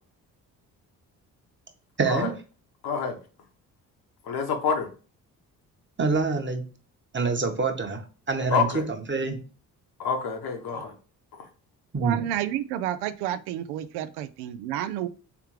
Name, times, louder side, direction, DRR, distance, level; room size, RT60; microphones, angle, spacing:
voice 1, 2.0-2.3 6.0-6.6 7.1-8.0 8.3-9.4 11.9-12.3, right 4 dB, 30° right, 1.1 m, -26 dB
voice 2, 2.8-3.2 4.3-4.9 8.5-8.8 10.0-10.9, left 6 dB, 65° left, 1.1 m, -27 dB
voice 3, 12.0-15.1, right 11 dB, 75° right, 0.5 m, -30 dB
3.5 x 3.3 x 3.1 m
hypercardioid pair, 50°, 40 cm